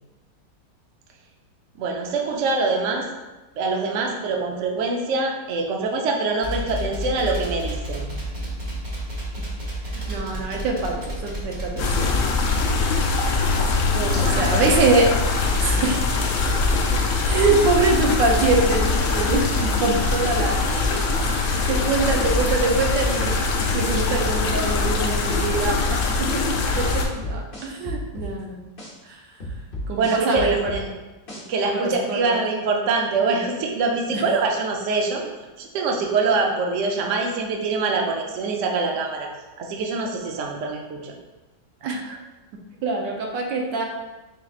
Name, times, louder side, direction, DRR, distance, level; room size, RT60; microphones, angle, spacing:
voice 1, 1.8-3.1 3.6-8.2 13.9-14.8 29.9-30.9 31.5-35.3 35.6-39.3 39.6-41.1, right 3 dB, 65° right, 1 dB, 0.7 m, -24 dB
sound 1, 6.4-24.3, equal, 25° right, 0.9 m, -31 dB
voice 2, 9.9-12.2 14.1-15.2 15.6-16.0 17.2-20.6 21.2-26.0 26.3-28.6 29.0-29.2 29.9-30.8 31.7-32.4 34.1-34.2 41.8-42.2 42.8-43.9, right 3 dB, 80° right, 1 dB, 1.3 m, -24 dB
sound 2, 11.8-27.0, left 4 dB, 75° left, 0.7 m, -23 dB
sound 3, 21.9-23.3 23.8-23.9 24.4-25.8 26.3-26.4 26.7-28.3 28.8-28.9 29.4-30.8 31.3-31.4, equal, 40° left, 0.8 m, -32 dB
4.4 x 4.1 x 2.4 m, 1.1 s
omnidirectional pair, 1.9 m